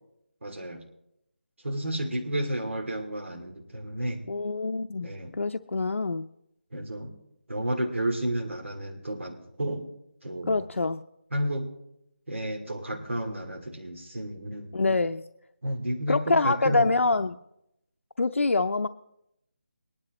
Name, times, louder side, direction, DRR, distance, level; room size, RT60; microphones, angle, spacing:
voice 1, 0.4-0.8 1.6-4.2 5.0-5.3 6.7-7.1 7.5-9.9 10.2-10.7 11.3-11.7 12.3-14.8 15.6-17.0, right 1 dB, 75° right, 1 dB, 2.8 m, -31 dB
voice 2, 4.3-6.3 10.5-11.0 14.7-15.2 16.1-17.4 18.2-18.9, left 3 dB, 85° left, 7 dB, 0.6 m, -25 dB
22.0 x 10.5 x 3.1 m, 0.81 s
figure-of-eight pair, 175°, 7 cm